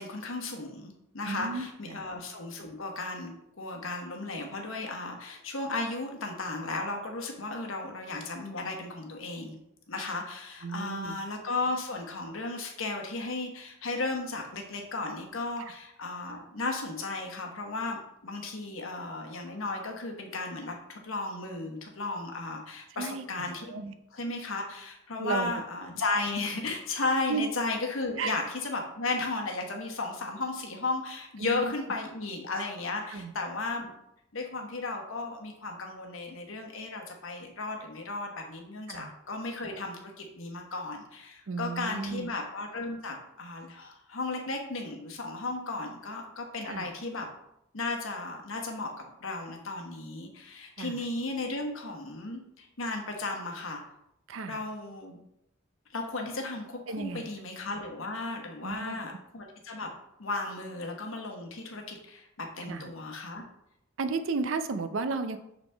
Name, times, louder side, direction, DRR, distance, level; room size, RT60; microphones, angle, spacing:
voice 1, 0.0-9.6 9.9-23.7 24.1-33.9 34.3-47.3 47.7-53.8 54.4-55.2 55.9-59.9 60.2-63.4, left 3 dB, 75° left, 2 dB, 1.1 m, -35 dB
voice 2, 1.3-2.0 10.6-11.2 22.9-23.9 25.2-25.5 27.3-27.4 28.2-28.4 31.4-31.7 33.1-33.3 38.9-39.1 41.5-42.3 46.6-46.9 50.8-51.1 54.3-54.6 56.9-57.2 58.6-59.0 62.7-62.9 64.0-65.4, right 4 dB, 70° right, 10 dB, 0.5 m, -34 dB
7.0 x 4.0 x 3.4 m, 0.80 s
head